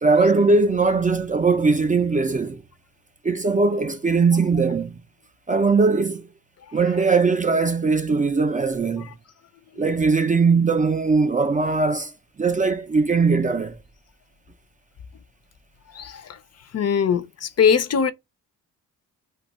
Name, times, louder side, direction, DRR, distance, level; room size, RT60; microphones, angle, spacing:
voice 1, 0.0-2.6 3.2-5.0 5.5-6.3 6.7-9.1 9.8-12.1 12.4-13.8, right 4 dB, 25° right, 0.4 m, -20 dB
voice 2, 15.9-16.4 16.7-18.1, left 7 dB, 50° left, 0.5 m, -22 dB
2.6 x 2.2 x 4.0 m
cardioid pair, 90°, 34 cm